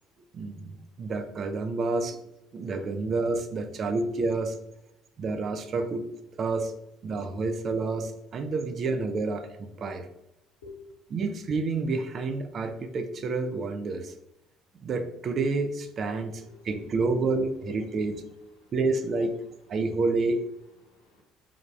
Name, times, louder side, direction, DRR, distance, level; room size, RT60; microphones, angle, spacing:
voice 1, 0.3-0.7 1.0-2.2 2.5-4.6 5.2-6.1 6.4-6.7 7.0-10.1 11.1-14.1 14.8-18.2 18.7-19.4 19.7-20.4, right 3 dB, 45° right, 8 dB, 0.4 m, -29 dB
voice 2, 16.0-17.2 17.8-18.8 19.5-20.0 20.6-21.2, left 4 dB, 75° left, -3 dB, 1.0 m, -53 dB
3.4 x 2.3 x 3.1 m, 0.88 s
figure-of-eight pair, 55°, 0 cm